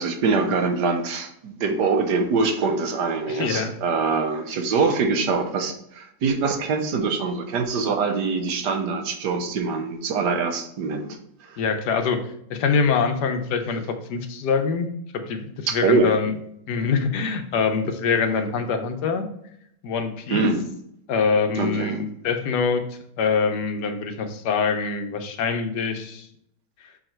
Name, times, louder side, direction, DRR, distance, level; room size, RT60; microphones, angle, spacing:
voice 1, 0.0-11.6 15.7-16.1 20.3-20.6 21.6-22.0, right 4 dB, 80° right, 6 dB, 1.5 m, -24 dB
voice 2, 3.3-3.7 11.6-12.2 12.5-14.9 15.1-16.3 16.7-19.3 19.8-20.5 21.1-22.8 23.2-26.3, left 5 dB, 75° left, 7 dB, 1.4 m, -24 dB
6.9 x 4.8 x 4.4 m, 0.72 s
omnidirectional pair, 1.8 m